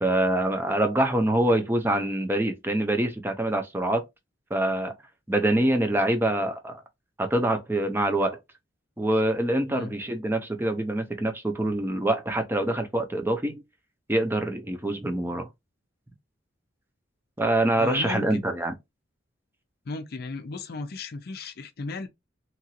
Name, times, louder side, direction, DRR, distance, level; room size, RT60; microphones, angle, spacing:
voice 1, 0.0-4.0 4.5-4.9 5.3-6.7 7.2-8.4 9.0-13.6 14.1-15.5 17.4-18.7, right 1 dB, 10° right, 0.6 m, -25 dB
voice 2, 17.8-18.4 19.9-22.1, left 3 dB, 55° left, 0.5 m, -35 dB
2.9 x 2.4 x 2.8 m
head